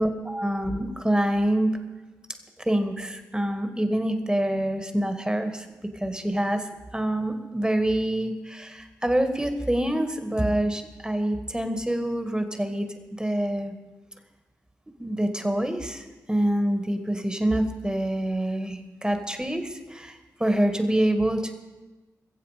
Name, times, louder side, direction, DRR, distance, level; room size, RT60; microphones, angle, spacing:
voice 1, 0.0-1.7 2.7-5.7 6.0-6.6 6.9-12.9 13.2-13.7 15.0-21.5, right 1 dB, 10° right, 7 dB, 1.9 m, -26 dB
22.0 x 7.6 x 5.2 m, 1.1 s
cardioid pair, 45°, 7 cm